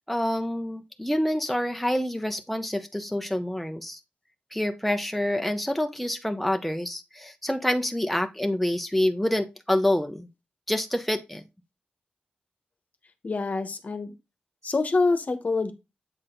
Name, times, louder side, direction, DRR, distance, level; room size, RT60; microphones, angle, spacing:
voice 1, 0.1-4.0 4.5-10.3 10.7-11.4, left 1 dB, ahead, 0.8 m, -27 dB
voice 2, 13.2-14.1 14.6-15.7, left 3 dB, 50° left, 1.1 m, -25 dB
7.9 x 4.1 x 3.7 m
wide cardioid pair, 90°, 3 cm